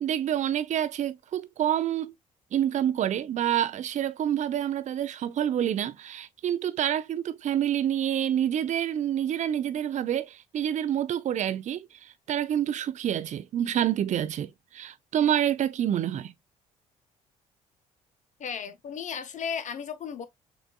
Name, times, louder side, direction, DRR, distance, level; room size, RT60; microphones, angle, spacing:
voice 1, 0.0-2.1 2.5-16.3, right 10 dB, 40° right, 0.5 m, -27 dB
voice 2, 18.4-20.2, left 7 dB, 45° left, 1.0 m, -35 dB
6.8 x 2.6 x 2.2 m
figure-of-eight pair, 50°, 18 cm